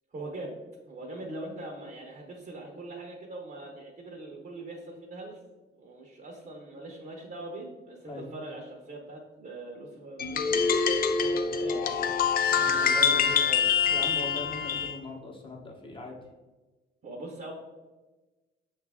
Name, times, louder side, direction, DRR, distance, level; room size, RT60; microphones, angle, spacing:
voice 1, 0.1-0.6 0.9-5.4 5.7-10.9 11.2-12.2 12.7-13.7 17.0-17.5, right 2 dB, 45° right, 0 dB, 0.8 m, -41 dB
sound 1, 10.2-14.9, left 6 dB, 45° left, 0.4 m, -25 dB
voice 2, 12.5-13.3 13.9-16.1, left 2 dB, 25° left, 0 dB, 1.0 m, -40 dB
5.7 x 2.5 x 3.4 m, 1.2 s
cardioid pair, 90°, 20 cm